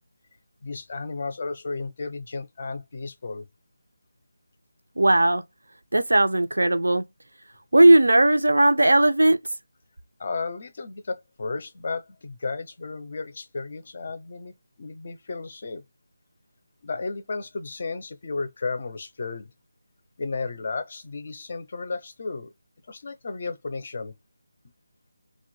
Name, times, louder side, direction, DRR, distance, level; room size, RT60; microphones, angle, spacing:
voice 1, 0.6-3.5 10.2-15.8 16.8-19.5 20.2-22.5 22.9-24.2, left 4 dB, 45° left, 0.4 m, -33 dB
voice 2, 5.0-5.4 5.9-7.0 7.7-9.4, right 1 dB, 90° right, 0.3 m, -17 dB
2.1 x 2.1 x 2.9 m
figure-of-eight pair, 165°, 0 cm